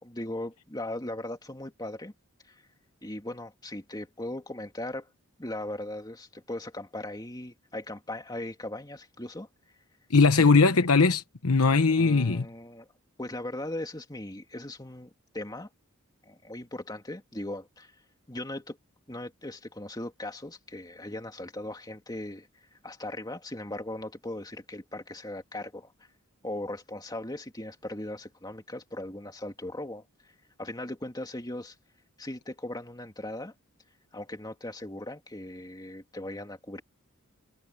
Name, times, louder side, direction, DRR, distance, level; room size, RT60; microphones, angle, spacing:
voice 1, 0.0-2.1 2.5-2.6 3.0-5.1 5.4-9.5 10.4-10.6 11.8-12.9 13.2-15.7 16.2-17.9 18.3-18.8 19.1-25.9 26.4-30.0 30.6-31.7 32.2-33.5 34.1-36.8, left 1 dB, 20° left, 2.5 m, -38 dB
voice 2, 10.1-12.5, left 4 dB, 90° left, 1.0 m, -20 dB
head